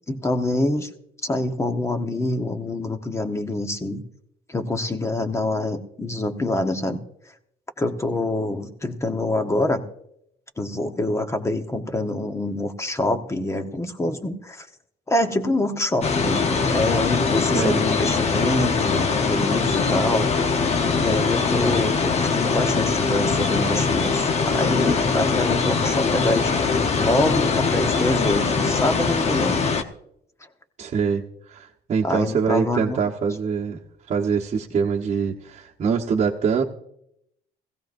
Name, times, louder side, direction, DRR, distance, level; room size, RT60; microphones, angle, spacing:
voice 1, 0.1-0.9 1.2-4.0 4.5-7.0 7.8-9.8 10.6-14.7 15.1-20.3 20.9-29.6 32.0-33.0, left 2 dB, 15° left, 7 dB, 1.1 m, -25 dB
sound 1, 16.0-29.8, left 4 dB, 40° left, 0.9 m, -22 dB
voice 2, 17.4-17.8 30.8-33.8 34.1-36.6, right 6 dB, 45° right, -3 dB, 1.1 m, -24 dB
17.0 x 16.0 x 2.6 m, 0.76 s
cardioid pair, 110°, 17 cm